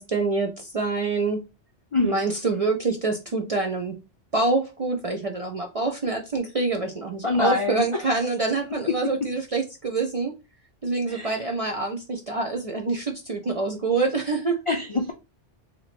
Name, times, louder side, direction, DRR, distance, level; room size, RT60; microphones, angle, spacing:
voice 1, 0.0-1.4 2.0-3.9 4.3-10.3 10.8-14.6, right 3 dB, 45° right, 0.4 m, -26 dB
voice 2, 7.2-8.1 11.1-11.5 14.7-15.1, left 3 dB, 55° left, 0.3 m, -25 dB
2.9 x 2.8 x 4.1 m
omnidirectional pair, 1.2 m